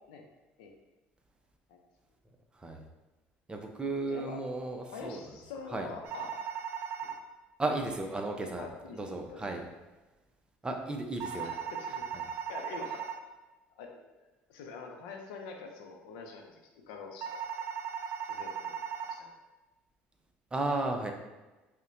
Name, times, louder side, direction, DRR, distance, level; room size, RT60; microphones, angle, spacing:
voice 1, 3.5-5.2 5.7-5.9 7.6-8.7 8.9-9.6 10.6-11.5 12.1-12.2 20.5-21.1, right 2 dB, 20° right, 3 dB, 0.6 m, -34 dB
voice 2, 4.1-4.4 4.9-6.3 7.0-7.1 8.1-8.2 8.6-9.5 11.4-12.2 12.5-13.1 13.7-17.6 18.3-19.3, left 5 dB, 85° left, 3 dB, 0.5 m, -46 dB
sound 1, 6.0-7.2 11.2-13.2 17.2-19.2, right 7 dB, 60° right, 0.4 m, -37 dB
5.2 x 2.2 x 2.6 m, 1.1 s
supercardioid pair, 75°, 5 cm